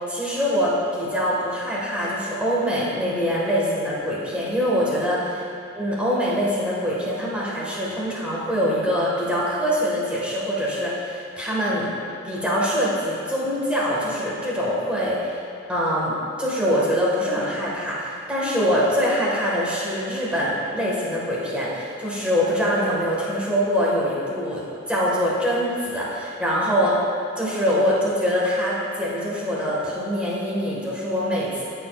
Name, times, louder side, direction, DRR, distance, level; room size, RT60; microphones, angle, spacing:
voice 1, 0.1-5.2 5.7-12.0 12.2-15.3 15.7-27.0 27.3-31.6, equal, 5° right, -7 dB, 1.7 m, -24 dB
13.5 x 6.9 x 2.5 m, 2.8 s
head